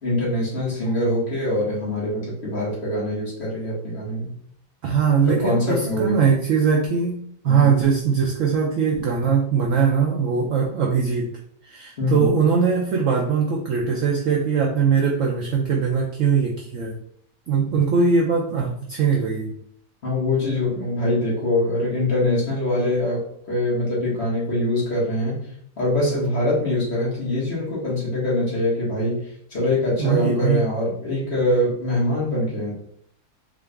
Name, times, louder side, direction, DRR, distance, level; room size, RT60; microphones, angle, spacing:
voice 1, 0.0-4.3 5.2-6.2 7.4-7.7 12.0-12.3 20.0-23.2 23.5-25.5 25.8-32.7, left 1 dB, 40° left, -6 dB, 1.5 m, -23 dB
voice 2, 4.8-7.2 7.4-11.3 11.6-17.0 17.5-19.5 30.0-30.6, right 6 dB, 70° right, -1 dB, 0.8 m, -21 dB
3.8 x 2.5 x 3.3 m, 0.64 s
omnidirectional pair, 1.8 m